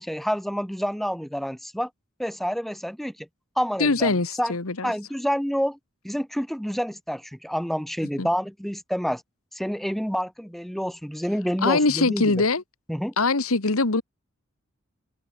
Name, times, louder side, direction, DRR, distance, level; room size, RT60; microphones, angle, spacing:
voice 1, 0.0-1.9 2.2-3.3 3.6-4.5 4.8-5.8 6.0-9.2 9.5-12.3 12.9-13.1, equal, ahead, 0.7 m, -28 dB
voice 2, 3.8-4.9 8.2-8.3 11.6-12.6 13.2-14.0, left 3 dB, 90° left, 1.7 m, -22 dB
head